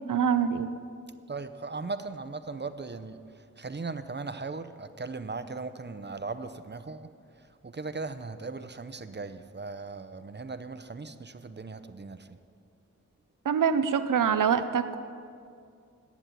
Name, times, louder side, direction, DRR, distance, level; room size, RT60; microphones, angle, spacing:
voice 1, 0.1-0.7 13.5-15.0, right 7 dB, 90° right, 11 dB, 0.6 m, -25 dB
voice 2, 1.3-12.4, right 4 dB, 35° right, 11 dB, 0.7 m, -38 dB
10.0 x 7.2 x 9.1 m, 2.3 s
cardioid pair, 45°, 31 cm